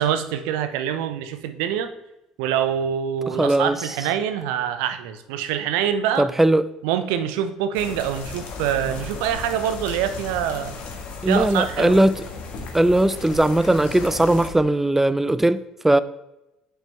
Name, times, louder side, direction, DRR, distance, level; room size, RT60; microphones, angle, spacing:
voice 1, 0.0-1.9 2.4-6.3 6.8-10.8 11.3-12.0, right 9 dB, 70° right, 0.6 m, -25 dB
voice 2, 3.4-3.8 6.2-6.6 11.2-12.2 12.7-16.0, right 1 dB, 10° right, 0.4 m, -19 dB
sound 1, 7.7-14.5, left 4 dB, 55° left, 1.5 m, -35 dB
8.7 x 5.4 x 3.4 m
hypercardioid pair, 55°, 3 cm